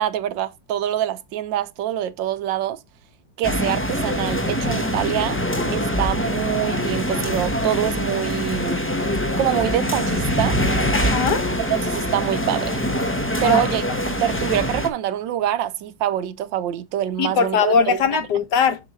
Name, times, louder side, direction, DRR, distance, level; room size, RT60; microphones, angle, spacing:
voice 1, 0.0-2.8 3.4-5.4 5.7-8.8 9.4-10.6 11.6-12.8 13.4-18.0, right 11 dB, 75° right, 1.4 m, -25 dB
sound 1, 3.4-14.9, equal, 10° left, 0.7 m, -24 dB
voice 2, 10.9-11.4 13.4-13.6 17.2-18.8, left 6 dB, 65° left, 1.5 m, -20 dB
6.7 x 6.4 x 3.1 m
omnidirectional pair, 2.1 m